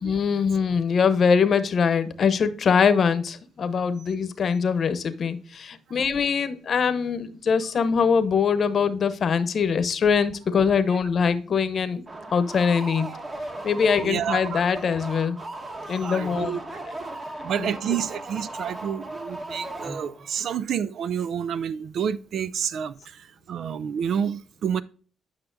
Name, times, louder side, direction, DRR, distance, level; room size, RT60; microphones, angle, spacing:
voice 1, 0.0-12.0 12.3-13.1 13.6-15.4 15.9-16.9 17.6-17.7, left 6 dB, 50° left, 0.9 m, -23 dB
sound 1, 12.1-20.4, right 2 dB, 30° right, 1.4 m, -37 dB
voice 2, 14.0-14.6 16.0-16.6 17.4-24.8, right 8 dB, 65° right, 0.3 m, -29 dB
10.0 x 5.7 x 2.6 m
cardioid pair, 90°, 0 cm